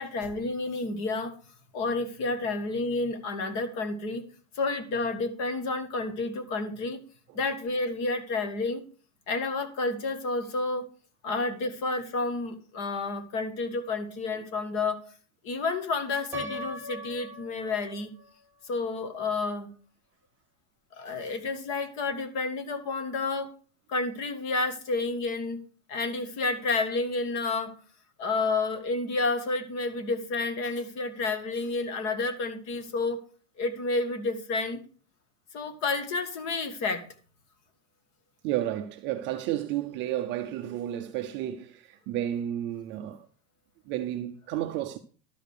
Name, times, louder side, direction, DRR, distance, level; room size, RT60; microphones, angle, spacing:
voice 1, 0.0-1.3 1.7-4.2 4.6-7.0 7.3-8.8 9.3-10.8 11.2-15.0 15.4-18.1 18.7-19.7 21.0-23.5 23.9-25.6 25.9-27.7 28.2-33.2 33.6-34.8 35.5-37.0, left 3 dB, 40° left, 1.8 m, -30 dB
Piano, 16.3-18.3, left 1 dB, 5° right, 1.5 m, -39 dB
voice 2, 38.4-43.3 43.9-45.0, right 12 dB, 30° right, 0.5 m, -32 dB
12.5 x 5.0 x 6.6 m
supercardioid pair, 165°, 41 cm